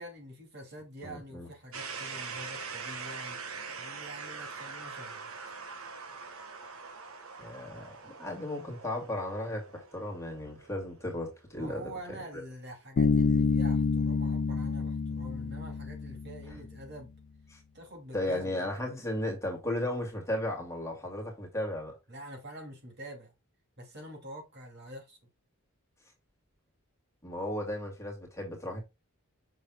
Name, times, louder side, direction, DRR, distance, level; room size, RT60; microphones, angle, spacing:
voice 1, 0.0-3.5 3.8-5.3 11.5-17.1 17.7-18.6 22.1-23.3 23.8-25.2, right 1 dB, 50° right, 2.6 m, -46 dB
voice 2, 1.0-1.5 7.4-12.2 16.5-16.6 17.5-17.6 18.1-22.0 27.2-28.8, left 1 dB, 15° left, 2.4 m, -35 dB
sound 1, 1.7-11.6, right 5 dB, 75° right, 1.5 m, -43 dB
Bass guitar, 13.0-16.7, left 4 dB, 50° left, 0.4 m, -28 dB
7.1 x 6.4 x 2.3 m
head